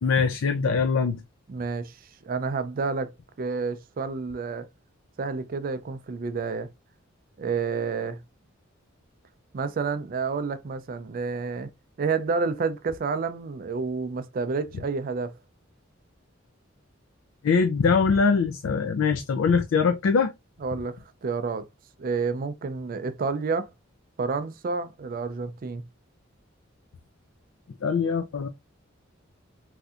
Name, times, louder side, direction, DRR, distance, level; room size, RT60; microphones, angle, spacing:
voice 1, 0.0-1.2 17.4-20.3 27.8-28.5, left 5 dB, 75° left, 0.4 m, -22 dB
voice 2, 1.5-2.0 2.2-4.7 5.2-6.7 7.4-8.2 9.5-11.7 12.0-15.3 20.6-21.7 22.0-23.7 24.2-25.8, right 4 dB, 45° right, 0.4 m, -29 dB
3.2 x 2.7 x 2.3 m
head